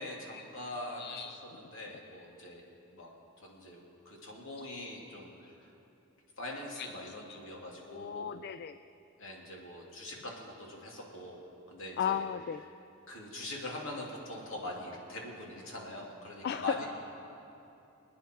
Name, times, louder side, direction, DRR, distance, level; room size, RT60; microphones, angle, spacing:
voice 1, 0.0-1.2 1.5-2.6 2.9-3.1 3.4-5.7 6.4-8.3 9.2-12.2 13.1-16.9, left 1 dB, 65° left, -2 dB, 2.9 m, -43 dB
voice 2, 1.0-1.6 6.7-7.4 7.9-8.8 12.0-12.6 16.4-16.8, left 8 dB, 50° left, 12 dB, 0.3 m, -36 dB
27.5 x 9.6 x 4.6 m, 2.8 s
head